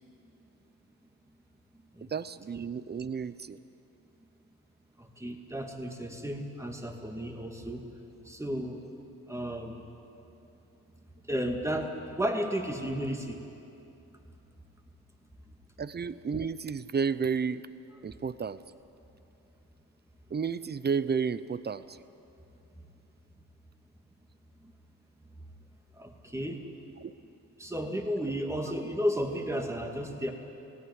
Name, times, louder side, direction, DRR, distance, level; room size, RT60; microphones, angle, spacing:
voice 1, 2.1-3.6 15.8-17.6 18.0-18.6 20.3-22.0 27.0-27.1, right 6 dB, 30° right, 15 dB, 0.7 m, -32 dB
voice 2, 5.0-7.8 8.2-8.8 9.3-9.8 11.3-13.4 18.1-18.2 25.9-26.6 27.6-30.3, equal, 10° right, 3 dB, 2.4 m, -33 dB
18.0 x 17.0 x 9.5 m, 2.8 s
cardioid pair, 80°, 33 cm